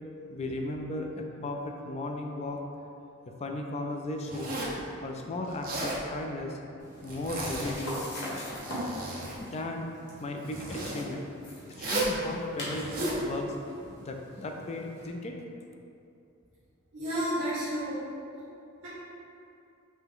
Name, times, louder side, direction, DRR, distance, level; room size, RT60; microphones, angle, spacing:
voice 1, 0.3-2.6 3.3-4.6 5.0-6.6 7.0-8.0 9.4-9.9 10.2-11.3 11.8-13.6 14.0-15.3, left 2 dB, 30° left, 3 dB, 0.3 m, -36 dB
Zipper (clothing), 4.3-4.8 5.5-6.0 7.0-7.9 8.4-9.4 10.5-11.0 11.7-12.2 12.7-13.2, right 2 dB, 40° right, 0.7 m, -34 dB
sound 1, 6.8-15.1, equal, 55° left, 1.1 m, -42 dB
voice 2, 16.9-18.0, equal, 65° right, -12 dB, 1.2 m, -31 dB
5.8 x 2.2 x 3.5 m, 2.7 s
head